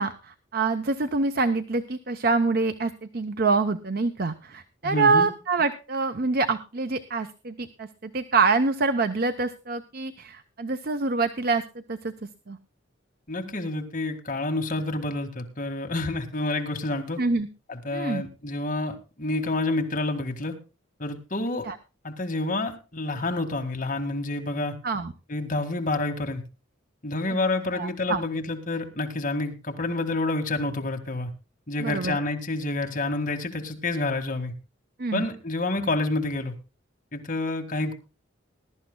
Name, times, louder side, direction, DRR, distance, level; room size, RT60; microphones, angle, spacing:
voice 1, 0.0-12.6 17.2-17.5 17.9-18.2 21.6-21.8 24.8-25.1 27.7-28.2 31.8-32.2 35.0-35.2, right 4 dB, 50° right, 9 dB, 0.7 m, -26 dB
voice 2, 4.8-5.3 13.3-17.2 17.7-20.6 21.0-21.7 22.0-24.8 25.3-26.4 27.0-31.3 31.7-34.5 35.1-36.5 37.1-37.9, left 2 dB, 40° left, 4 dB, 1.9 m, -28 dB
20.5 x 12.5 x 2.2 m, 0.31 s
head